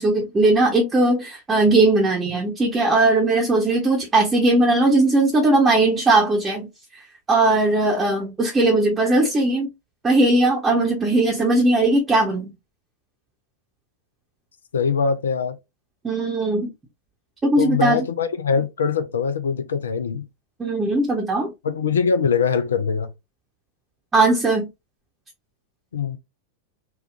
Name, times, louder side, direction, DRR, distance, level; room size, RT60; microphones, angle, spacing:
voice 1, 0.0-6.7 7.3-9.7 10.0-12.5 16.0-16.7 17.4-18.1 20.6-21.5 24.1-24.7, right 2 dB, 15° right, 0.8 m, -19 dB
voice 2, 14.7-15.6 17.6-20.2 21.6-23.1 25.9-26.2, left 6 dB, 70° left, 0.4 m, -22 dB
3.4 x 2.3 x 2.4 m
figure-of-eight pair, 90°, 0 cm